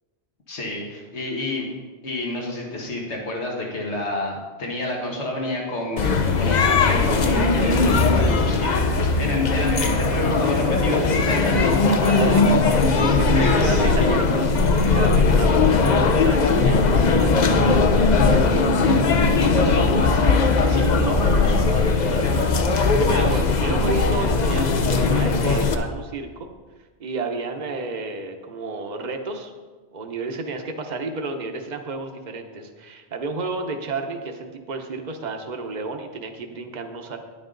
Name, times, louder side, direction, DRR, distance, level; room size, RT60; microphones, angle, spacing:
voice 1, 0.5-1.7 2.0-11.7 12.2-12.3 13.3-14.2 15.6-15.9 19.3-20.2 20.6-23.3, left 1 dB, 75° left, -1 dB, 1.8 m, -29 dB
sound 1, 6.0-25.7, left 4 dB, 45° left, 0.7 m, -19 dB
voice 2, 11.4-12.4 12.9-18.6 19.3-19.9 23.1-26.5 27.0-29.5 29.9-37.2, right 3 dB, 40° right, 4 dB, 1.0 m, -32 dB
10.0 x 9.7 x 3.9 m, 1.4 s
omnidirectional pair, 1.2 m